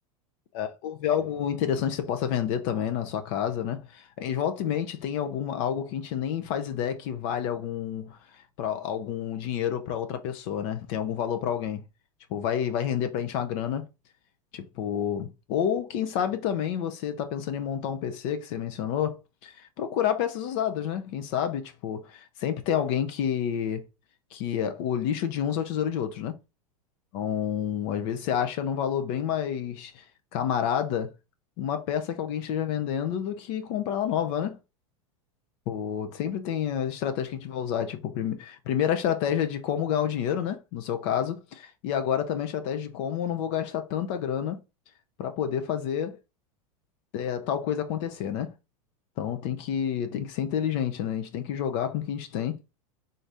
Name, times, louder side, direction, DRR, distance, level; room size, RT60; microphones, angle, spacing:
voice 1, 0.5-11.8 12.3-13.8 14.5-23.8 24.3-26.3 27.1-30.0 30.3-31.1 31.6-34.6 35.7-44.6 45.2-46.2 47.1-48.5 49.2-52.6, left 9 dB, 55° left, 0.6 m, -29 dB
3.8 x 2.6 x 3.4 m
hypercardioid pair, 105°, 18 cm